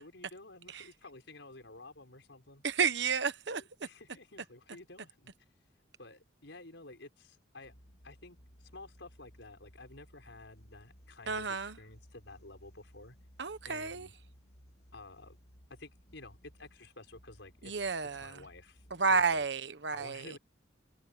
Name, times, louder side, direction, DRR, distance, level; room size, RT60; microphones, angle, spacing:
voice 1, 0.0-2.6 3.5-5.3 6.0-7.7 8.0-13.2 13.7-14.1 14.9-15.4 15.7-18.8 19.1-19.5 19.9-20.4, left 2 dB, 75° left, 5.7 m, -52 dB
voice 2, 2.6-3.6 11.3-11.8 13.4-14.1 17.6-18.4 18.9-20.4, right 5 dB, 65° right, 1.2 m, -31 dB
sound 1, 7.6-19.4, equal, 60° left, 4.0 m, -60 dB
head